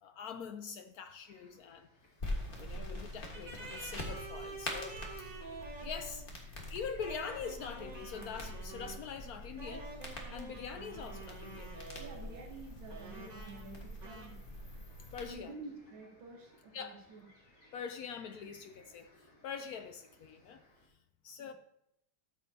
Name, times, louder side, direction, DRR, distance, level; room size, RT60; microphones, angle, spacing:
voice 1, 0.0-1.9 2.6-5.4 5.8-6.2 6.7-11.7 14.9-15.5 16.7-17.1 17.7-20.6 21.2-21.5, left 6 dB, 75° left, 0.8 m, -44 dB
sound 1, 1.2-20.9, left 1 dB, 60° left, 2.4 m, -66 dB
sound 2, 2.2-15.3, left 1 dB, 30° left, 1.5 m, -44 dB
sound 3, 3.3-6.3 7.0-9.1 9.6-12.4 12.9-13.7 14.0-14.3, right 3 dB, 60° right, 2.7 m, -48 dB
voice 2, 12.0-14.4 15.2-17.2 21.4-21.5, right 3 dB, 80° right, 2.0 m, -49 dB
12.5 x 7.1 x 2.8 m
omnidirectional pair, 2.1 m